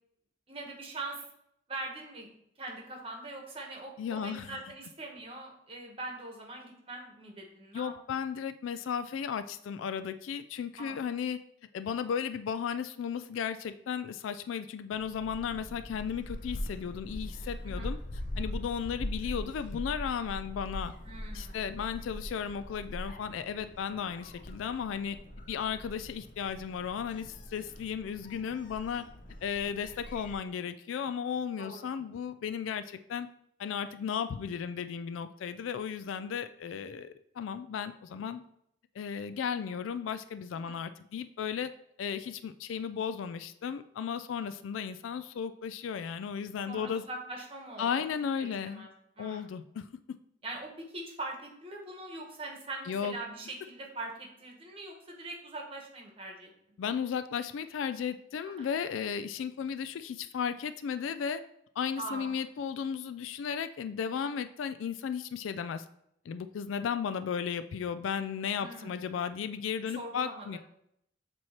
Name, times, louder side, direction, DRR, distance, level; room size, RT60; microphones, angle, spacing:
voice 1, 0.5-1.2 1.7-2.3 2.6-7.9 10.8-11.0 17.7-17.9 21.0-21.6 31.6-31.9 40.6-40.7 46.7-48.1 48.4-49.5 50.4-56.5 58.6-58.7 62.0-62.3 68.6-69.0 69.9-70.5, right 2 dB, 30° right, 0 dB, 1.1 m, -42 dB
voice 2, 4.0-4.6 7.7-11.4 11.7-18.0 18.4-20.9 21.3-25.2 25.5-29.0 29.4-33.3 33.6-38.4 39.0-41.7 42.0-47.0 47.8-48.9 49.2-49.9 52.9-53.2 56.8-61.4 61.8-65.8 66.3-70.6, left 7 dB, 85° left, 11 dB, 0.3 m, -35 dB
Gull seagull, 14.9-30.4, left 1 dB, 45° left, 0.6 m, -42 dB
7.5 x 3.1 x 4.3 m, 0.75 s
head